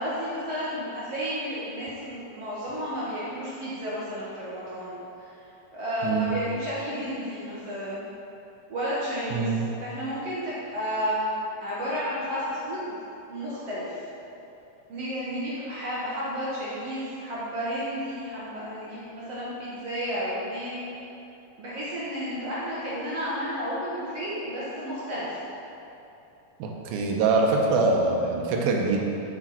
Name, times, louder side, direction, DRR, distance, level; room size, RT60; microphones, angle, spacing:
voice 1, 0.0-5.3 5.7-8.1 8.7-9.5 9.8-12.9 13.3-13.9 14.9-20.8 21.6-25.4, equal, 55° right, -9 dB, 1.8 m, -32 dB
voice 2, 9.3-9.7 26.6-29.0, right 3 dB, 80° right, 0 dB, 2.6 m, -24 dB
7.5 x 7.4 x 4.3 m, 2.9 s
omnidirectional pair, 4.2 m